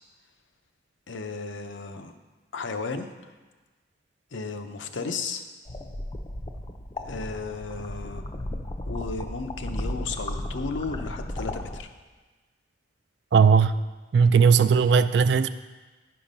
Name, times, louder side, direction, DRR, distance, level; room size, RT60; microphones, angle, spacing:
voice 1, 1.1-2.1 2.5-3.3 4.3-5.4 7.0-8.3 8.8-11.9, left 4 dB, 80° left, 7 dB, 0.7 m, -34 dB
sound 1, 5.7-11.8, left 1 dB, 25° left, 0.5 m, -34 dB
voice 2, 13.3-13.7 14.1-15.5, right 6 dB, 65° right, 13 dB, 0.3 m, -18 dB
10.5 x 5.8 x 5.2 m, 1.3 s
head